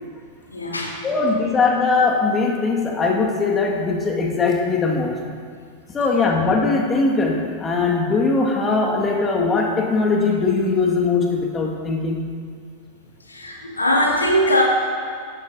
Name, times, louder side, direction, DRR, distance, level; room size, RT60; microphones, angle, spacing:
voice 1, 0.5-1.0 13.3-14.6, equal, 80° left, -2 dB, 2.3 m, -20 dB
voice 2, 1.0-5.2 5.9-12.3, left 4 dB, 20° left, 0 dB, 1.7 m, -20 dB
18.5 x 12.0 x 2.6 m, 2.1 s
figure-of-eight pair, 90°, 0 cm